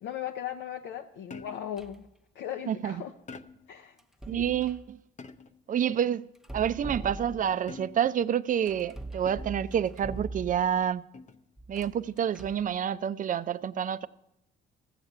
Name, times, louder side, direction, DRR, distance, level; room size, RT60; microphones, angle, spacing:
voice 1, 0.0-2.1 2.3-3.1 3.7-4.0 4.3-4.6, left 10 dB, 80° left, 0.7 m, -37 dB
sound 1, 1.3-1.8 3.3-3.8 5.2-5.7 7.7-8.2 9.2-9.7 11.1-11.5, left 4 dB, 35° left, 0.7 m, -46 dB
sound 2, 1.8-2.1 4.0-4.9 6.3-7.7 8.7-10.8 11.6-12.7, right 2 dB, ahead, 0.7 m, -42 dB
voice 2, 2.7-3.0 4.3-5.0 5.7-6.3 6.5-11.0 11.7-14.1, right 9 dB, 40° right, 0.4 m, -28 dB
14.5 x 7.3 x 6.7 m
cardioid pair, 90°, 20 cm